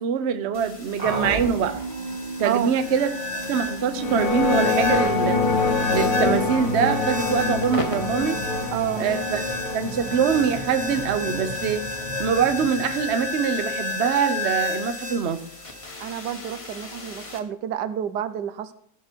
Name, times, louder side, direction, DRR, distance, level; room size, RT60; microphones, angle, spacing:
voice 1, 0.0-1.8 2.4-3.1 3.5-5.4 5.9-8.4 9.0-9.4 9.7-11.8 12.2-15.4, right 7 dB, 50° right, 9 dB, 1.0 m, -24 dB
sound 1, 0.5-17.4, left 3 dB, 20° left, 1.1 m, -32 dB
sound 2, 1.0-13.9, right 3 dB, 25° right, 1.1 m, -36 dB
voice 2, 2.4-2.8 8.7-9.1 16.0-18.7, right 10 dB, 80° right, 12 dB, 1.4 m, -29 dB
sound 3, 3.9-12.6, left 4 dB, 60° left, 2.2 m, -26 dB
15.5 x 6.5 x 4.5 m, 0.65 s
omnidirectional pair, 1.8 m